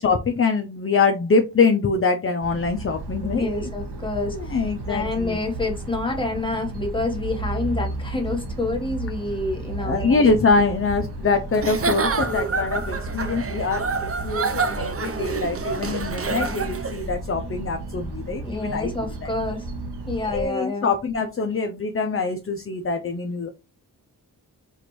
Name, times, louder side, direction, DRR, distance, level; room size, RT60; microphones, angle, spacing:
voice 1, 0.0-3.7 4.3-5.4 9.8-18.9 19.2-19.3 20.2-23.5, left 4 dB, 35° left, 0.5 m, -24 dB
sound 1, 2.4-20.5, right 2 dB, 80° right, 1.1 m, -33 dB
voice 2, 3.1-4.6 4.9-10.3 16.2-16.6 18.4-19.7 20.1-20.9, left 2 dB, 15° left, 1.3 m, -28 dB
Giggle / Chuckle chortle, 11.5-17.0, right 4 dB, 35° right, 0.6 m, -27 dB
4.9 x 2.5 x 3.1 m
wide cardioid pair, 80°, 39 cm